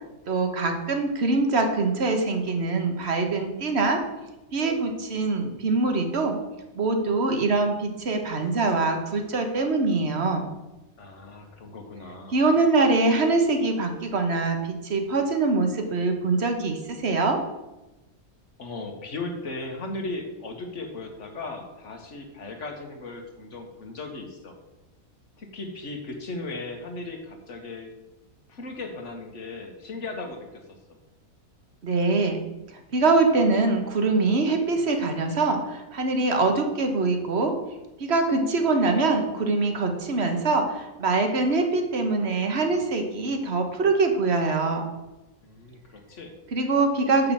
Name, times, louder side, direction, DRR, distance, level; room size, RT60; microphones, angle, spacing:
voice 1, 0.3-4.0 4.5-6.4 6.7-10.5 12.3-17.4 31.8-32.4 32.9-37.5 38.0-44.8 46.5-47.3, right 3 dB, 50° right, 5 dB, 1.4 m, -23 dB
voice 2, 11.0-12.4 18.6-24.5 25.4-27.9 28.5-30.6 45.4-46.3, left 2 dB, 55° left, 4 dB, 1.6 m, -37 dB
6.7 x 5.9 x 7.2 m, 1.0 s
omnidirectional pair, 1.5 m